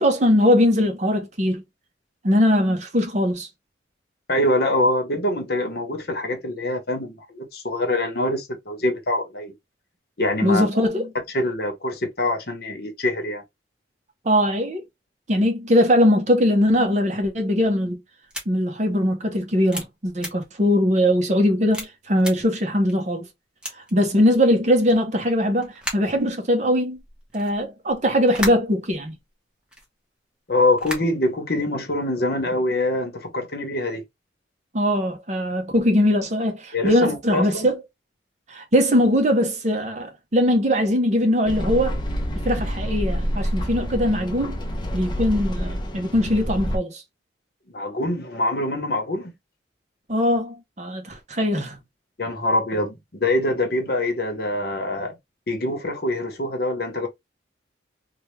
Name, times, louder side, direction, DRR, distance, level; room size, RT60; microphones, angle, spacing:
voice 1, 0.0-1.6 2.2-3.5 10.4-11.1 14.2-14.8 15.3-18.0 18.5-23.3 23.9-27.0 27.3-29.1 34.7-37.8 38.5-42.0 42.4-44.6 44.9-47.0 50.1-51.8, equal, 40° right, 0.7 m, -21 dB
voice 2, 4.3-9.5 10.2-10.7 11.3-13.4 30.5-34.0 36.7-37.7 47.7-49.3 52.2-55.2 55.5-57.1, left 1 dB, 55° left, 0.9 m, -24 dB
sound 1, 18.3-18.4 19.0-19.1 19.7-19.8 20.2-20.3 20.9-21.0 21.7-21.9 22.2-22.3 22.9-23.0 23.6-23.9 24.8-25.0 25.6-26.1 26.9-29.2 29.6-29.9 30.6-31.3, equal, 5° right, 0.9 m, -33 dB
sound 2, 41.5-46.8, equal, 25° left, 0.5 m, -27 dB
3.2 x 2.2 x 3.1 m
head